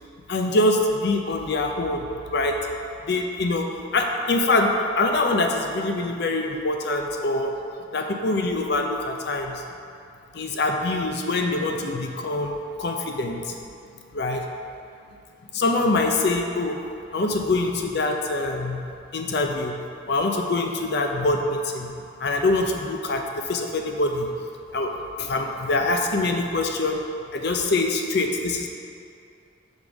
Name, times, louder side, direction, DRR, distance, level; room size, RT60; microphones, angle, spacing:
voice 1, 0.3-2.6 3.1-3.7 3.9-7.5 7.9-9.6 10.3-13.5 14.1-14.4 15.5-16.8 17.1-18.8 19.1-19.8 20.1-21.9 22.2-24.3 24.7-24.9 25.2-27.0 27.3-28.7, left 2 dB, 60° left, 3 dB, 0.6 m, -24 dB
6.2 x 3.7 x 4.9 m, 2.6 s
head